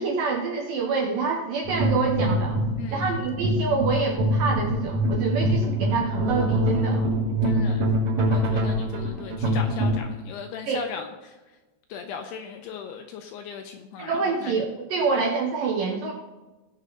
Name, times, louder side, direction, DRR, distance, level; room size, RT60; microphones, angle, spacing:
voice 1, 0.0-2.6 2.9-7.1 10.7-10.8 14.0-16.1, right 4 dB, 70° right, 0 dB, 2.1 m, -26 dB
sound 1, 1.6-10.0, equal, 20° right, 3.7 m, -24 dB
voice 2, 2.8-3.1 7.4-7.9 8.3-11.4 11.9-14.2 14.4-14.5 15.2-15.3, left 7 dB, 85° left, 5 dB, 2.4 m, -38 dB
19.0 x 6.3 x 4.1 m, 1.1 s
omnidirectional pair, 5.3 m